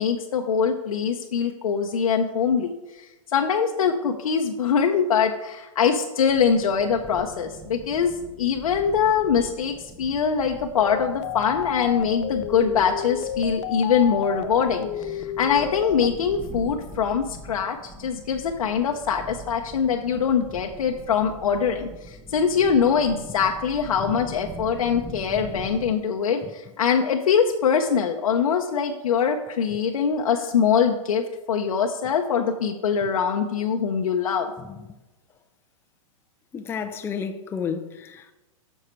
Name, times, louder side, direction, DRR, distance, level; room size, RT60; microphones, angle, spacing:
voice 1, 0.0-34.5, left 6 dB, 85° left, 0.8 m, -23 dB
sound 1, 6.3-25.9, right 2 dB, 10° right, 1.0 m, -42 dB
sound 2, 10.8-16.1, left 11 dB, 60° left, 0.5 m, -31 dB
voice 2, 25.3-25.7 26.4-26.5 29.7-29.8 34.6-34.9 36.5-38.3, left 6 dB, 15° left, 0.5 m, -33 dB
10.0 x 6.5 x 4.4 m
hypercardioid pair, 135°, 18 cm